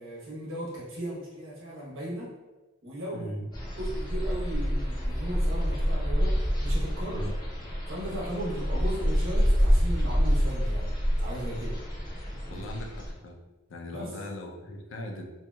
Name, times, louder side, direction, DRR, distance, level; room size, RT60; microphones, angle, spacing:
voice 1, 0.0-2.3 2.8-3.3 3.8-6.3 6.6-7.2 7.9-10.9 11.2-11.8 12.5-12.6 13.9-14.1, right 1 dB, 80° right, -5 dB, 1.0 m, -36 dB
voice 2, 3.1-3.5 7.1-7.4 12.5-13.4 13.7-15.3, left 1 dB, 70° left, 1 dB, 0.4 m, -39 dB
sound 1, 3.5-13.1, equal, 20° left, 0.7 m, -27 dB
2.8 x 2.8 x 2.2 m, 1.2 s
head